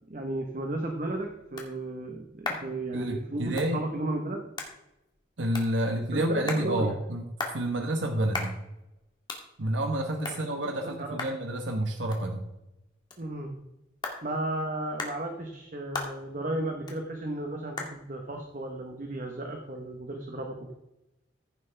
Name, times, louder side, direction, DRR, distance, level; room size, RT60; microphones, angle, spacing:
voice 1, 0.1-4.4 6.1-6.9 10.8-11.1 13.2-13.5 14.2-20.7, right 2 dB, 45° right, 2 dB, 1.1 m, -34 dB
sound 1, 0.7-20.0, left 3 dB, 25° left, 1.8 m, -42 dB
voice 2, 2.9-3.8 5.4-7.3 7.5-8.6 9.6-12.5, right 1 dB, 85° right, 4 dB, 1.1 m, -29 dB
14.5 x 7.4 x 3.4 m, 0.92 s
head